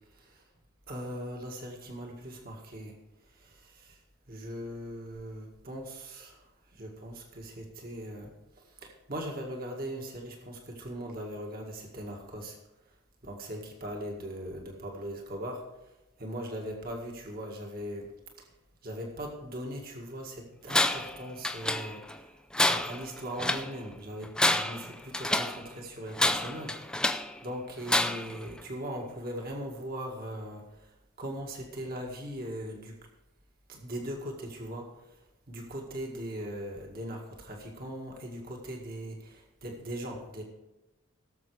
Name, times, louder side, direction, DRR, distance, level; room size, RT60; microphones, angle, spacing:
voice 1, 0.1-0.5 0.9-3.0 3.3-4.0 4.3-12.6 13.2-15.9 16.2-18.1 18.4-18.5 18.8-33.0 33.7-35.2 35.5-40.4, equal, 45° right, 0 dB, 1.9 m, -40 dB
Tools, 20.7-21.1 21.4-22.1 22.5-23.7 24.2-25.6 26.1-27.3 27.9-28.4, left 1 dB, 5° left, 0.4 m, -28 dB
17.5 x 7.4 x 4.9 m, 0.97 s
head